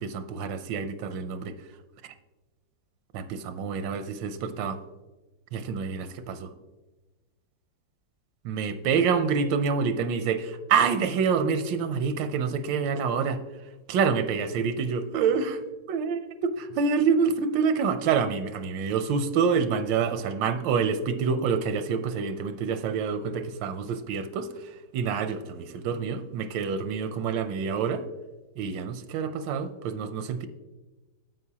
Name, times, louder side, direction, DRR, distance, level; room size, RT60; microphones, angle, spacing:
voice 1, 0.0-1.5 2.0-2.1 3.1-4.8 5.5-6.5 8.4-13.4 13.9-15.6 15.9-28.0 28.6-30.5, right 6 dB, 85° right, 10 dB, 1.3 m, -27 dB
9.4 x 7.7 x 2.8 m, 1.2 s
omnidirectional pair, 2.0 m